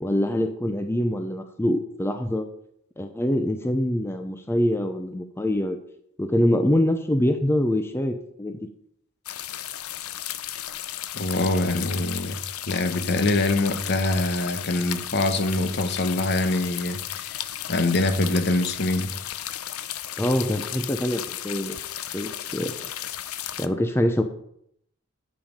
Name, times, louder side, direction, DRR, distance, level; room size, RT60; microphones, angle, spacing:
voice 1, 0.0-2.5 3.0-5.8 6.2-8.6 20.2-21.8 22.1-22.7 23.6-24.2, left 1 dB, 10° left, 0.6 m, -24 dB
sound 1, 9.3-23.7, left 12 dB, 80° left, 0.6 m, -34 dB
voice 2, 11.1-12.4 12.7-17.4 17.7-19.1, left 2 dB, 50° left, 1.0 m, -24 dB
10.0 x 7.3 x 5.2 m
head